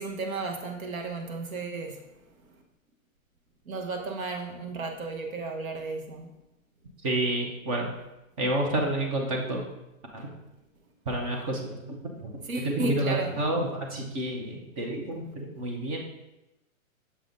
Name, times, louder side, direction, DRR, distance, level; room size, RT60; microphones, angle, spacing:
voice 1, 0.0-2.0 3.7-6.3 12.4-13.3, right 3 dB, 80° right, 3 dB, 1.1 m, -33 dB
voice 2, 7.0-7.9 8.4-9.7 10.1-10.3 11.1-12.3 12.6-16.0, right 1 dB, 25° right, 1 dB, 0.7 m, -29 dB
6.9 x 5.3 x 2.5 m, 0.94 s
hypercardioid pair, 155°, 41 cm